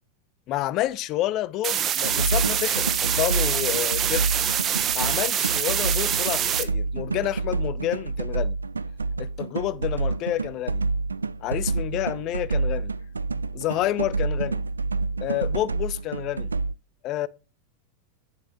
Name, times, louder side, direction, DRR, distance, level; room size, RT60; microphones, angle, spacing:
voice 1, 0.5-4.5 4.9-8.6 9.2-10.8 11.4-12.9 13.5-14.6 15.2-16.5 17.0-17.3, left 14 dB, 35° left, 0.7 m, -29 dB
sound 1, 1.6-6.6, right 9 dB, 30° right, 1.1 m, -25 dB
sound 2, 2.0-16.7, right 3 dB, 75° right, 0.4 m, -28 dB
9.9 x 7.2 x 3.6 m
figure-of-eight pair, 90°, 0 cm